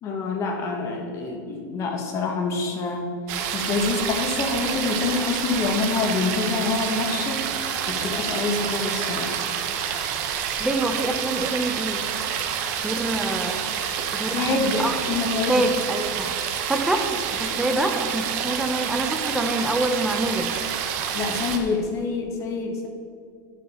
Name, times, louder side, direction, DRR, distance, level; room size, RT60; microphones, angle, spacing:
voice 1, 0.0-3.1 3.5-7.4 7.9-9.4 14.3-15.6 21.1-22.9, left 4 dB, 30° left, 3 dB, 1.2 m, -26 dB
sound 1, 3.3-21.6, right 8 dB, 50° right, 0.9 m, -28 dB
voice 2, 10.6-12.0 12.8-13.7 14.1-15.0 15.5-20.5, right 2 dB, 5° right, 5 dB, 0.6 m, -26 dB
10.0 x 8.5 x 4.2 m, 2.2 s
supercardioid pair, 160°, 11 cm